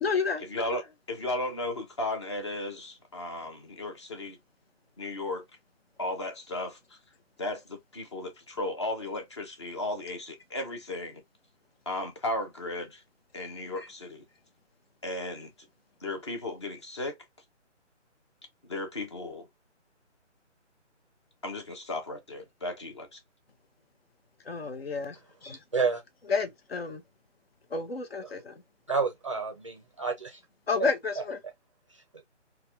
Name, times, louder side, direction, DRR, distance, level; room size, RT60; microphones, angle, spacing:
voice 1, 0.0-0.4 13.8-13.9 24.4-25.6 26.3-27.0 27.7-28.6 30.7-31.4, left 4 dB, 55° left, 0.9 m, -31 dB
voice 2, 0.5-4.4 5.0-5.4 6.0-7.0 7.4-11.2 11.9-13.0 13.3-14.2 15.0-15.5 16.0-17.2 18.6-19.5 21.4-23.2, left 2 dB, 25° left, 0.7 m, -35 dB
voice 3, 28.9-30.4 30.8-30.9 31.9-32.2, right 5 dB, 25° right, 0.6 m, -30 dB
4.1 x 2.3 x 2.6 m
figure-of-eight pair, 150°, 36 cm